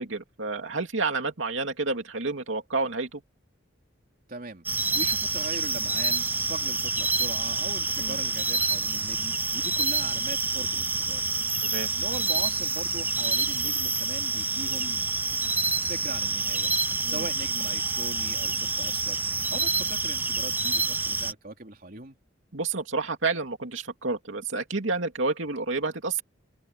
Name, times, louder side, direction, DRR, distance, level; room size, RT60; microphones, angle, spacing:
voice 1, 0.0-3.2 8.0-8.2 11.6-11.9 17.0-17.3 22.5-26.2, right 3 dB, 85° right, 2.5 m, -29 dB
voice 2, 4.3-4.6 4.9-11.3 12.0-15.0 15.9-16.7 17.0-19.2 19.5-22.2, right 2 dB, 50° right, 3.5 m, -40 dB
sound 1, 4.7-21.3, right 3 dB, 10° right, 0.5 m, -27 dB
head